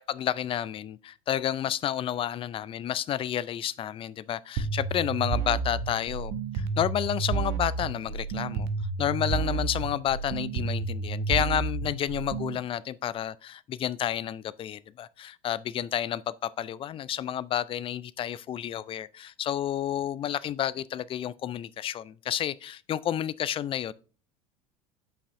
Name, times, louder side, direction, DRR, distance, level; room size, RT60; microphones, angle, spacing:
voice 1, 0.0-8.7 9.0-23.9, left 10 dB, 30° left, 0.4 m, -30 dB
sound 1, 4.6-12.6, right 4 dB, 55° right, 1.0 m, -31 dB
8.4 x 5.5 x 2.6 m
hypercardioid pair, 75°, 18 cm